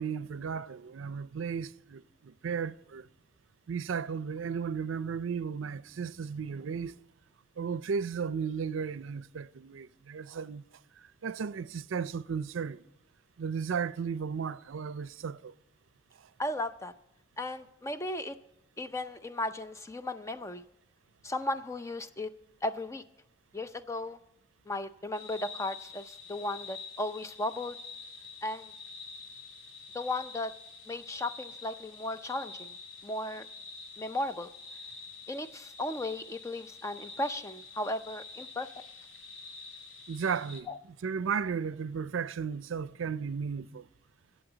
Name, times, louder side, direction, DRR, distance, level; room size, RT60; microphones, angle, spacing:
voice 1, 0.0-3.1 3.7-7.0 7.6-10.6 11.0-12.8 13.4-15.5 16.2-16.3 40.1-40.7 41.0-43.9, right 6 dB, 85° right, 0.5 m, -35 dB
voice 2, 16.4-16.9 17.4-18.4 18.8-20.6 21.2-22.3 22.6-23.0 23.5-24.2 24.7-27.8 28.4-28.7 29.9-30.5 30.9-32.7 33.0-33.5 34.0-34.5 35.3-38.7 40.7-40.8, left 1 dB, 15° left, 0.5 m, -35 dB
sound 1, 25.1-40.6, left 4 dB, 90° left, 1.7 m, -47 dB
23.0 x 7.9 x 3.9 m
head